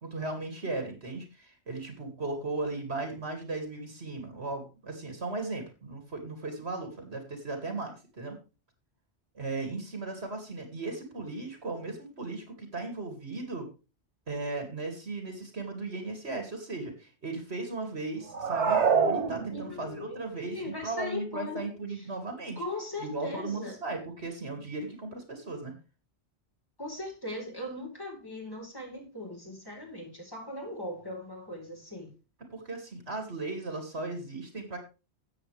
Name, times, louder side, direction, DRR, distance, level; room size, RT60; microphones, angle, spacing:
voice 1, 0.0-8.4 9.3-13.7 14.3-22.6 23.0-25.7 32.4-34.8, right 3 dB, 70° right, 5 dB, 2.9 m, -36 dB
sound 1, 18.3-19.9, right 6 dB, 85° right, 1.7 m, -26 dB
voice 2, 19.5-22.1 22.6-23.8 26.8-32.1, left 2 dB, 20° left, 0 dB, 4.4 m, -39 dB
13.0 x 8.9 x 3.4 m, 0.31 s
omnidirectional pair, 1.1 m